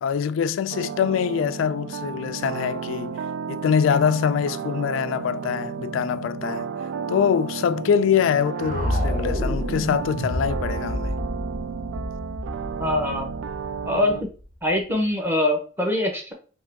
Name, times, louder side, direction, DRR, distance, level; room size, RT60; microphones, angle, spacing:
voice 1, 0.0-3.2 3.5-6.7 7.1-11.1, left 7 dB, 80° left, 0.3 m, -24 dB
sound 1, 0.7-14.2, right 6 dB, 80° right, 0.3 m, -33 dB
sound 2, 8.6-14.7, equal, 45° right, 1.1 m, -29 dB
voice 2, 12.8-13.3 13.8-14.1 14.6-16.3, left 1 dB, 10° right, 0.9 m, -23 dB
3.7 x 2.9 x 3.4 m
head